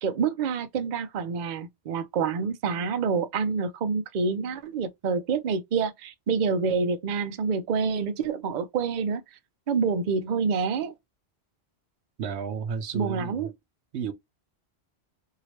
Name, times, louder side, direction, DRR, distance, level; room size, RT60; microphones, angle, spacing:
voice 1, 0.0-9.2 9.7-10.9 12.9-13.5, right 5 dB, 55° right, 0.6 m, -27 dB
voice 2, 12.2-13.5 13.9-14.1, right 6 dB, 80° right, 0.9 m, -32 dB
3.0 x 2.8 x 2.9 m
omnidirectional pair, 1.1 m